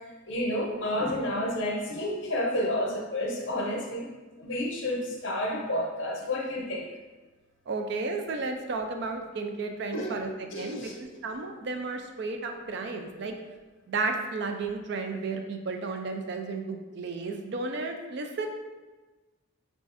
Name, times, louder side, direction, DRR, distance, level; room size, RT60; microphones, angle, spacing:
voice 1, 0.3-4.1 4.4-6.9 9.9-10.9, left 1 dB, 60° left, -1 dB, 0.7 m, -30 dB
voice 2, 7.7-13.3 13.9-18.5, right 3 dB, 50° right, 5 dB, 0.3 m, -33 dB
4.9 x 2.4 x 2.5 m, 1.2 s
head